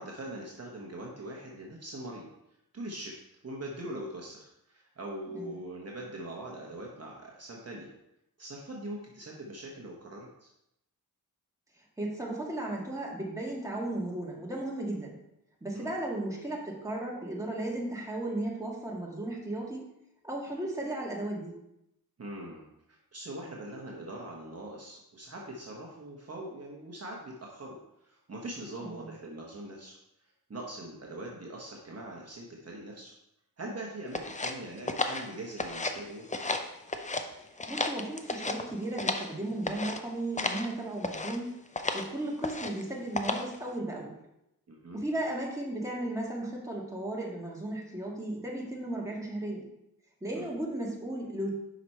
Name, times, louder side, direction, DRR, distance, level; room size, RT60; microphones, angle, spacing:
voice 1, 0.0-2.3 2.7-7.9 8.4-10.5 15.7-15.9 22.2-33.1 33.6-36.4 44.7-45.0 50.3-50.5, right 1 dB, 40° right, -2 dB, 1.1 m, -42 dB
voice 2, 12.0-15.2 15.6-19.8 20.2-21.5 28.8-29.1 37.7-41.6 41.9-44.1 44.9-49.7 50.2-51.5, right 1 dB, 10° right, -3 dB, 1.9 m, -35 dB
sound 1, 34.1-36.0 36.3-37.3 37.6-39.3 39.7-40.0 40.4-40.7 41.0-41.4 41.8-42.1 42.4-42.8 43.2-43.6, left 3 dB, 20° left, 0.6 m, -33 dB
5.8 x 5.1 x 4.2 m, 0.83 s
cardioid pair, 70°, 37 cm